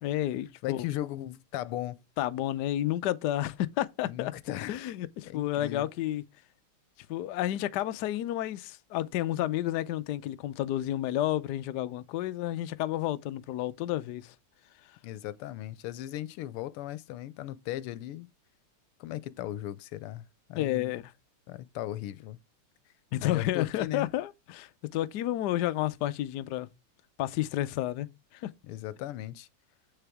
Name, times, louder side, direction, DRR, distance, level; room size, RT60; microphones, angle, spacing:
voice 1, 0.0-0.8 2.2-4.3 4.7-6.2 7.1-14.3 20.6-21.0 23.1-26.7 27.2-28.1 28.3-28.5, left 13 dB, 70° left, 1.0 m, -31 dB
voice 2, 0.6-2.0 4.0-4.8 5.2-5.9 15.0-18.3 19.0-20.9 21.5-22.4 23.2-24.1 28.6-29.5, left 14 dB, 90° left, 1.6 m, -37 dB
7.4 x 6.8 x 3.5 m
omnidirectional pair, 2.4 m